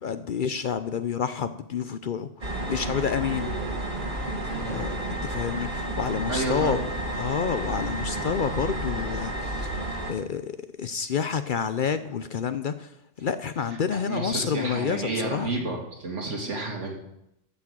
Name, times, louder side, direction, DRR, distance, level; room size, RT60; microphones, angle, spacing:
voice 1, 0.0-2.3 2.7-3.5 4.7-6.8 7.1-9.8 10.1-15.7, left 7 dB, 55° left, 12 dB, 0.6 m, -29 dB
sound 1, 2.4-10.1, right 1 dB, 45° right, 1.7 m, -31 dB
voice 2, 4.4-4.8 6.3-6.8 13.9-16.9, right 2 dB, 85° right, 0 dB, 2.7 m, -31 dB
12.5 x 6.0 x 7.8 m, 0.84 s
omnidirectional pair, 1.2 m